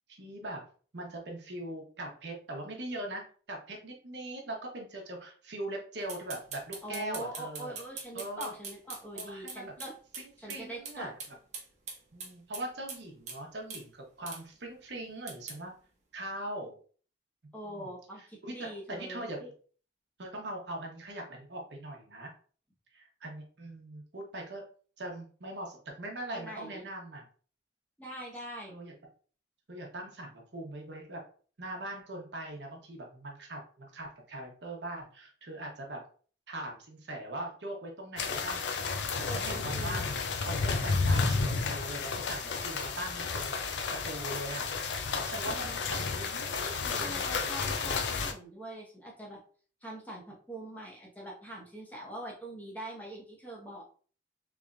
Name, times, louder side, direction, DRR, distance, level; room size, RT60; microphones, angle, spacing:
voice 1, 0.1-0.6 0.9-7.7 8.1-8.5 9.1-9.7 10.2-11.1 12.1-15.7 16.1-16.7 17.4-17.9 18.4-19.5 20.2-22.3 22.9-24.6 25.0-27.2 28.7-28.9 29.7-31.2 31.6-36.0 36.5-38.6 39.2-43.7 44.0-44.7 45.2-47.2, right 1 dB, 80° right, 0 dB, 0.9 m, -41 dB
sound 1, 6.1-10.2 10.5-10.6 10.9-11.0 11.2-13.0 13.3-13.4 13.7-13.8 14.3-14.4 15.3-15.6, right 4 dB, 40° right, 0.9 m, -42 dB
voice 2, 6.8-9.9 10.4-11.1 17.5-19.2 26.3-26.9 28.0-28.7 39.3-40.1 45.5-45.8 47.0-49.4 49.8-53.8, right 1 dB, 10° left, -3 dB, 0.9 m, -43 dB
sound 2, 38.2-48.3, left 4 dB, 90° left, 0.5 m, -32 dB
3.4 x 3.1 x 2.5 m, 0.43 s
head